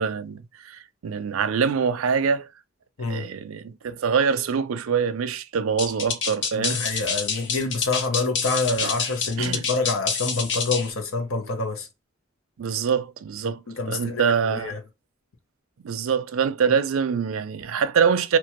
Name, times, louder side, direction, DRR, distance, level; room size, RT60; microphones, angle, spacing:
voice 1, 0.0-2.5 3.1-6.8 8.8-8.9 9.4-9.7 12.6-13.6 13.9-14.8 15.8-18.4, right 6 dB, 85° right, 0.4 m, -24 dB
sound 1, 5.8-10.9, left 6 dB, 55° left, 0.6 m, -27 dB
voice 2, 6.6-11.9 13.7-14.8, left 3 dB, 90° left, 0.8 m, -27 dB
2.9 x 2.3 x 2.9 m
head